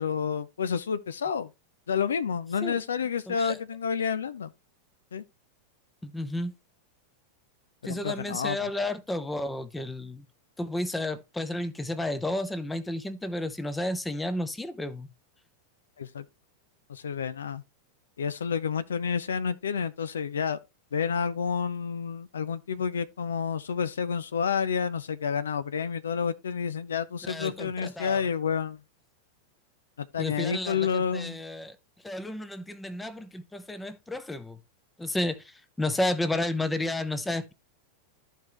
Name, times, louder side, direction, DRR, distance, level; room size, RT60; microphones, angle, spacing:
voice 1, 0.0-1.5 1.9-4.5 5.1-5.2 7.8-8.7 16.0-16.2 16.9-17.6 18.2-20.6 20.9-28.8 30.0-31.4, left 6 dB, 65° left, 0.5 m, -29 dB
voice 2, 3.3-3.6 6.0-6.5 7.8-10.2 10.6-15.1 27.2-28.3 30.2-31.8 32.0-34.6 35.0-37.5, left 1 dB, 10° left, 0.8 m, -32 dB
13.5 x 4.6 x 3.0 m
figure-of-eight pair, 90°, 0 cm